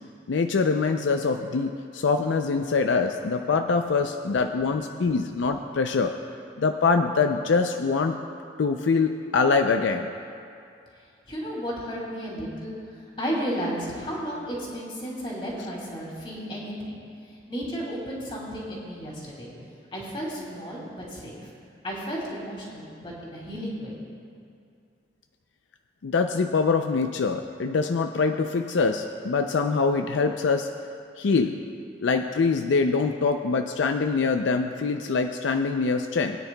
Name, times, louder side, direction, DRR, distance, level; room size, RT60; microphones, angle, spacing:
voice 1, 0.3-6.1 6.6-8.2 8.6-10.1 26.0-30.7 31.2-31.5 32.0-36.4, left 4 dB, 80° left, 6 dB, 0.4 m, -24 dB
voice 2, 11.3-12.7 13.2-17.0 17.5-19.5 19.9-21.5 21.8-24.0, equal, 30° left, -4 dB, 2.5 m, -33 dB
20.5 x 9.7 x 2.2 m, 2.4 s
head